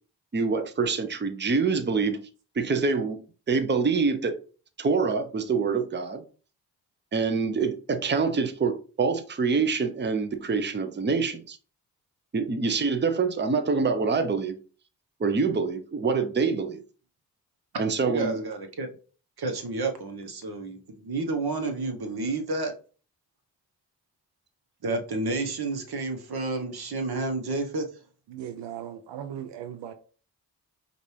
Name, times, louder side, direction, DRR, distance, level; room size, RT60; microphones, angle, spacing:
voice 1, 0.3-2.2 2.6-3.2 3.5-4.4 4.8-6.2 7.1-11.6 12.3-14.6 15.2-16.8 17.8-18.4, right 4 dB, 25° right, 0.7 m, -25 dB
voice 2, 18.0-18.9 19.4-22.7 24.8-27.8, right 3 dB, 60° right, 1.1 m, -30 dB
voice 3, 28.3-29.9, right 10 dB, 80° right, 0.6 m, -38 dB
5.1 x 2.6 x 3.2 m
supercardioid pair, 45°, 43 cm